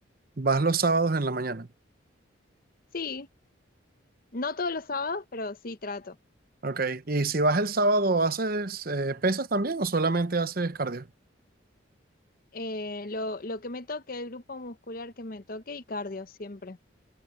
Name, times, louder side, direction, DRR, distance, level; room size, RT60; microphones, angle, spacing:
voice 1, 0.4-1.7 6.6-11.1, right 3 dB, 50° right, 0.9 m, -26 dB
voice 2, 2.9-3.3 4.3-6.2 12.5-16.8, left 3 dB, 45° left, 0.8 m, -35 dB
head